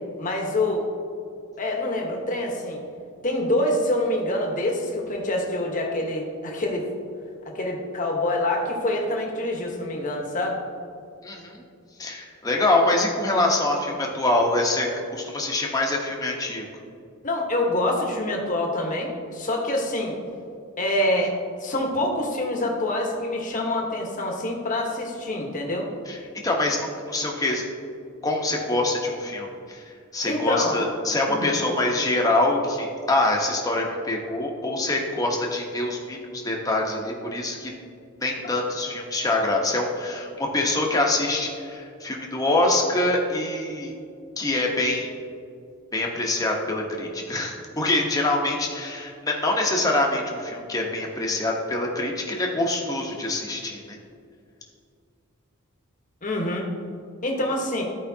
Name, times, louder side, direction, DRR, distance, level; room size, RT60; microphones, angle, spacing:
voice 1, 0.2-0.9 1.6-2.8 3.2-6.9 7.4-10.6 17.2-20.2 20.8-21.3 21.6-25.9 30.3-30.8 31.3-31.5 38.4-38.6 56.2-56.7 57.2-57.8, left 1 dB, 35° left, 0 dB, 1.2 m, -26 dB
voice 2, 11.2-11.6 12.0-14.9 15.1-16.7 26.1-26.2 26.4-26.8 27.1-27.7 28.2-29.8 30.1-37.7 38.2-43.9 44.4-45.1 45.9-54.0, left 2 dB, 15° left, -1 dB, 1.0 m, -25 dB
14.0 x 5.0 x 2.8 m, 2.4 s
head